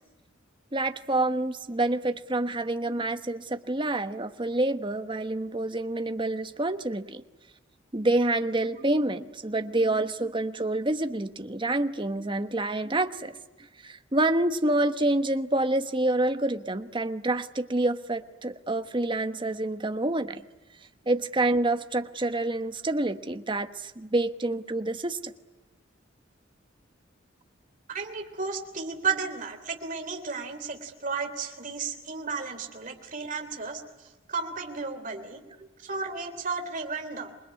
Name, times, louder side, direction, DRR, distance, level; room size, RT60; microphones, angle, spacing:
voice 1, 0.7-7.2 7.9-13.4 13.8-20.4 21.1-25.3, right 2 dB, 25° right, 10 dB, 1.1 m, -27 dB
voice 2, 27.9-33.8 34.3-35.4 35.8-37.3, right 5 dB, 40° right, 5 dB, 3.3 m, -33 dB
27.5 x 21.5 x 9.5 m, 1.1 s
head